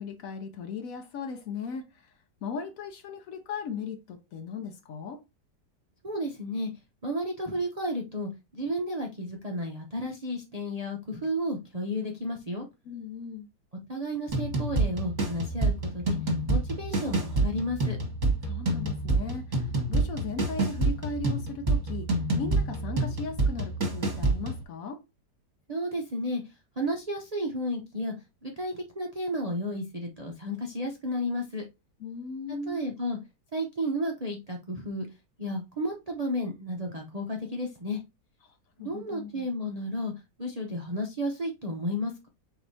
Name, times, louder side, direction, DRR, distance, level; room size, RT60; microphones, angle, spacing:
voice 1, 0.0-2.1 2.4-5.2 12.8-13.5 18.4-25.0 32.0-32.8 38.4-38.5 38.8-39.5, left 5 dB, 65° left, 0.9 m, -37 dB
voice 2, 6.0-6.7 7.0-12.6 13.9-16.2 16.5-18.0 25.7-26.4 26.8-28.1 28.4-31.6 32.7-33.2 33.5-35.1 35.4-38.0 38.8-40.1 40.4-42.3, equal, 60° right, 0.4 m, -32 dB
sound 1, 14.3-24.6, right 2 dB, 30° right, 1.2 m, -28 dB
4.7 x 3.9 x 2.6 m
omnidirectional pair, 1.9 m